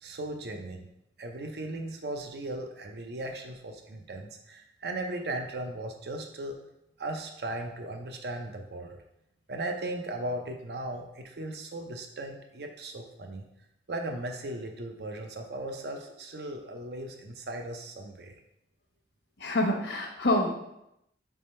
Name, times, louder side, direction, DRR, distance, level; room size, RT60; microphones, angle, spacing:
voice 1, 0.0-0.9 1.2-6.6 7.0-9.0 9.5-13.5 13.9-18.4, right 1 dB, 65° right, 4 dB, 0.6 m, -37 dB
voice 2, 19.4-20.5, left 1 dB, 75° left, 1 dB, 0.9 m, -26 dB
3.5 x 3.1 x 4.2 m, 0.82 s
head